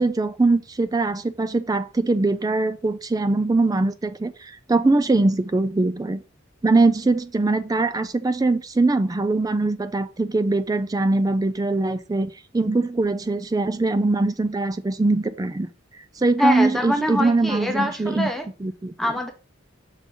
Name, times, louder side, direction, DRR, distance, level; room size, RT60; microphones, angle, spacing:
voice 1, 0.0-6.2 6.6-15.7 16.2-18.3 18.6-18.9, right 2 dB, 20° right, 0.4 m, -22 dB
voice 2, 16.4-18.5 19.0-19.3, left 1 dB, ahead, 1.0 m, -24 dB
6.3 x 3.7 x 5.3 m
head